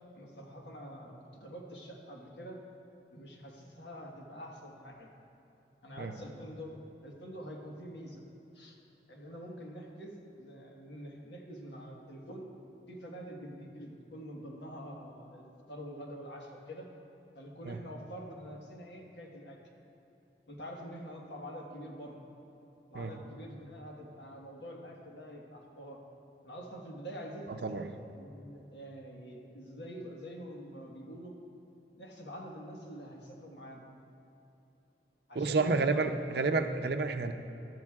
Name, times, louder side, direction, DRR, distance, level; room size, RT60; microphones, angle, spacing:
voice 1, 0.1-2.6 3.1-5.1 5.8-6.7 7.0-8.2 8.5-8.8 9.1-12.5 12.9-16.9 17.3-19.6 20.5-22.2 22.9-26.0 26.4-31.3 32.0-33.8 35.3-36.2, equal, 90° left, 0 dB, 1.4 m, -46 dB
voice 2, 35.3-37.3, right 3 dB, 65° right, 8 dB, 0.5 m, -30 dB
13.0 x 12.0 x 2.4 m, 3.0 s
head